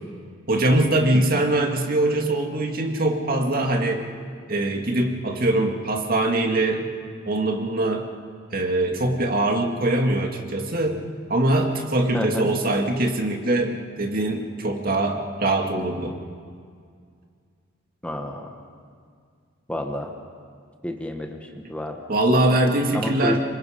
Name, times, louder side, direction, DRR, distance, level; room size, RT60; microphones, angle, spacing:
voice 1, 0.5-4.0 4.5-6.9 7.3-8.0 8.5-11.0 11.3-16.1 22.1-23.4, right 1 dB, 45° right, 2 dB, 2.2 m, -22 dB
voice 2, 12.1-12.5 18.0-18.5 19.7-20.1 20.8-22.0 22.9-23.4, left 1 dB, 5° left, 3 dB, 1.2 m, -30 dB
27.0 x 24.5 x 5.1 m, 2.1 s
head